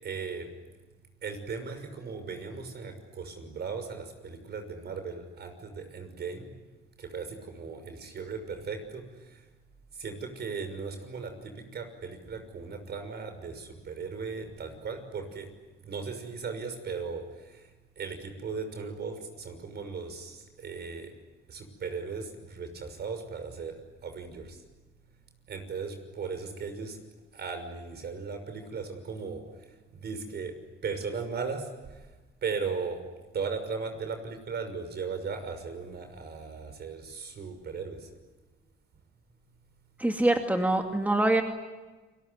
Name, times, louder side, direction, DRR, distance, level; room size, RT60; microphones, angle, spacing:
voice 1, 0.0-0.5 1.2-6.5 7.0-9.0 10.0-15.5 15.8-17.2 18.0-21.1 21.5-23.7 24.0-24.5 25.5-27.0 27.3-29.4 30.0-30.5 30.8-31.6 32.4-33.0 33.3-38.0, right 5 dB, 55° right, 8 dB, 6.0 m, -37 dB
voice 2, 40.0-41.4, right 1 dB, 10° right, 4 dB, 2.4 m, -24 dB
29.5 x 20.5 x 9.7 m, 1.2 s
cardioid pair, 90°, 20 cm